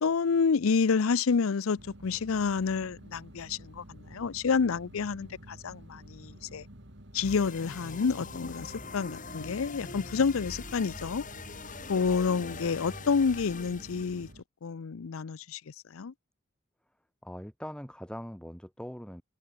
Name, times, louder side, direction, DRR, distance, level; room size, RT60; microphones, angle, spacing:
voice 1, 0.0-6.7 7.1-11.2 11.9-14.3 14.6-15.6 15.9-16.1, left 5 dB, 80° left, 0.5 m, -29 dB
sound 1, 1.8-14.4, right 1 dB, 55° right, 4.1 m, -50 dB
sound 2, 7.2-14.3, left 3 dB, 40° left, 3.5 m, -43 dB
voice 2, 17.2-19.2, equal, 5° left, 3.1 m, -42 dB
head